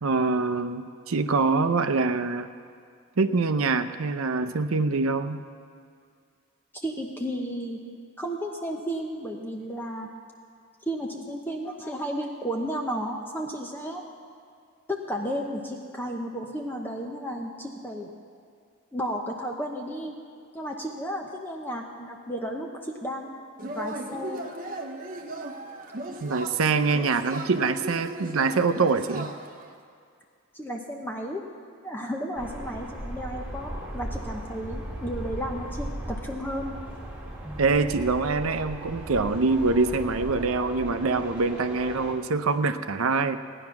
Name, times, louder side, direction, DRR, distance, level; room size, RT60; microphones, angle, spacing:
voice 1, 0.0-2.5 3.2-5.4 26.2-29.3 37.6-43.4, right 4 dB, 85° right, 10 dB, 0.6 m, -24 dB
voice 2, 6.7-7.8 8.2-10.1 10.9-14.0 14.9-18.1 18.9-20.1 20.5-24.4 30.5-31.4 31.8-35.9 36.2-36.7 37.4-37.6, equal, 10° left, 1 dB, 0.8 m, -33 dB
Yell / Cheering, 23.6-29.7, right 1 dB, 40° right, 0.9 m, -37 dB
sound 1, 32.4-42.1, right 1 dB, 10° right, 2.2 m, -37 dB
16.5 x 10.0 x 5.9 m, 2.3 s
head